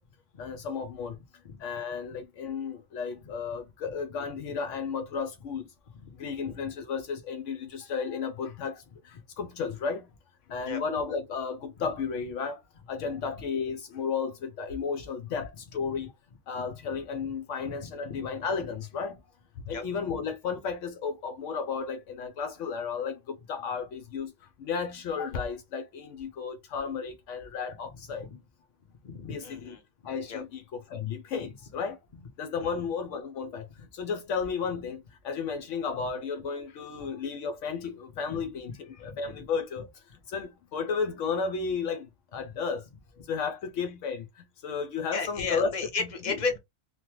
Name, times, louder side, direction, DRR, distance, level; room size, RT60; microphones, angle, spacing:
voice 1, 0.4-1.2 1.6-5.7 6.2-10.1 10.5-12.6 12.9-16.1 16.5-19.2 19.7-28.3 29.2-29.7 30.0-32.0 32.4-33.7 33.9-42.8 43.2-45.7 46.0-46.3, left 5 dB, 75° left, 0.9 m, -33 dB
voice 2, 29.0-30.4 32.6-32.7 38.9-39.1 45.1-46.6, left 4 dB, 40° left, 1.0 m, -34 dB
3.1 x 2.2 x 3.0 m
omnidirectional pair, 1.3 m